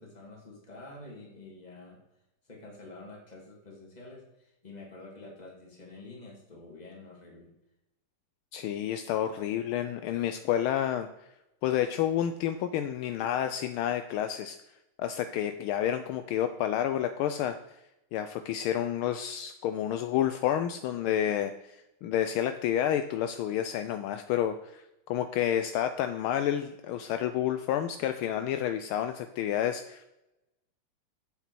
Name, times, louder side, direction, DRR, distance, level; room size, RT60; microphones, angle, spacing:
voice 1, 0.0-2.1 2.5-7.5, left 2 dB, 20° left, -1 dB, 2.1 m, -48 dB
voice 2, 8.5-11.1 11.6-14.6 15.0-17.6 18.1-21.5 22.0-30.1, left 10 dB, 80° left, 8 dB, 1.4 m, -29 dB
8.0 x 6.9 x 4.5 m, 0.89 s
omnidirectional pair, 2.4 m